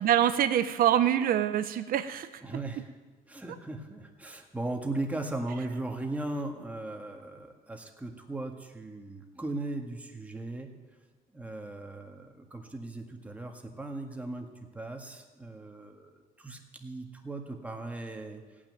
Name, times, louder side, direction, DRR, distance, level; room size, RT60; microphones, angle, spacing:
voice 1, 0.0-2.3, right 10 dB, 60° right, 11 dB, 0.8 m, -25 dB
voice 2, 2.4-2.9 3.3-10.7 11.3-16.1 16.4-18.4, right 2 dB, 10° right, 3 dB, 1.8 m, -38 dB
17.5 x 6.1 x 9.2 m, 1.4 s
cardioid pair, 110°, 17 cm